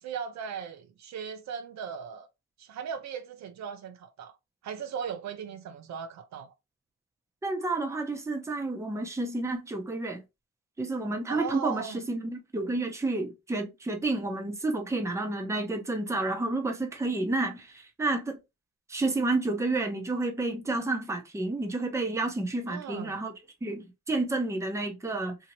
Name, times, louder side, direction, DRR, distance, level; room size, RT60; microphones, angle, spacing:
voice 1, 0.0-2.3 2.6-4.3 4.6-6.5 11.3-12.0 22.7-23.2, right 7 dB, 65° right, 0.6 m, -38 dB
voice 2, 7.4-10.2 10.8-18.4 18.9-23.3 23.6-25.4, right 2 dB, 10° right, 0.7 m, -30 dB
2.8 x 2.7 x 2.8 m
cardioid pair, 90°, 30 cm